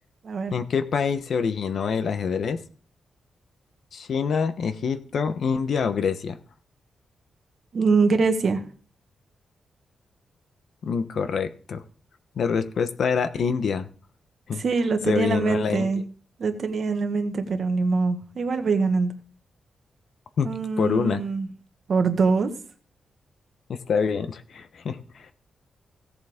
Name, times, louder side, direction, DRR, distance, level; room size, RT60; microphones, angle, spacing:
voice 1, 0.5-2.6 3.9-6.4 10.8-11.8 12.4-13.9 14.5-14.6 15.1-15.9 20.4-20.5 20.8-21.2 23.7-25.0, left 6 dB, 60° left, 10 dB, 1.1 m, -25 dB
voice 2, 7.7-8.7 14.6-16.0 16.4-19.1 20.4-21.5 21.9-22.5, right 4 dB, 50° right, 6 dB, 1.6 m, -23 dB
16.5 x 7.8 x 3.7 m, 0.43 s
wide cardioid pair, 140°, 0 cm